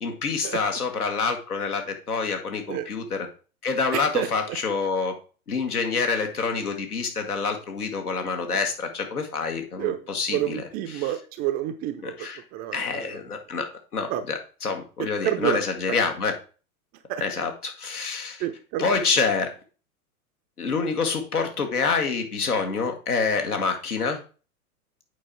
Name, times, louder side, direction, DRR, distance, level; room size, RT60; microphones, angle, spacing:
voice 1, 0.0-3.3 3.6-5.2 5.5-11.2 12.0-12.4 12.7-16.3 17.2-18.5 18.8-19.6 20.6-24.2, left 4 dB, 80° left, 4 dB, 1.8 m, -27 dB
voice 2, 3.9-4.3 9.8-10.0 10.3-12.1 12.5-12.8 14.1-14.2 15.2-15.6 17.1-17.2 18.4-18.8, right 13 dB, 20° right, 8 dB, 0.4 m, -28 dB
8.5 x 4.6 x 4.4 m, 0.37 s
figure-of-eight pair, 100°, 45 cm